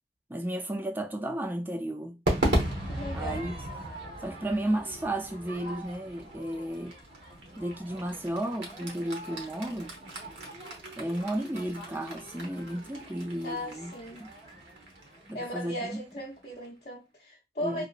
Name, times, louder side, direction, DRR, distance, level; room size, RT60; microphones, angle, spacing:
voice 1, 0.3-2.2 3.1-3.6 4.2-7.0 7.6-9.9 11.0-13.9 14.2-14.3 15.3-16.0 17.6-17.8, right 1 dB, 10° right, 0.3 m, -33 dB
Crowd / Fireworks, 2.3-16.7, right 1 dB, 80° right, 1.0 m, -36 dB
voice 2, 2.9-3.5 13.4-14.2 15.3-17.9, equal, 45° left, 0.5 m, -37 dB
2.9 x 2.0 x 2.4 m
head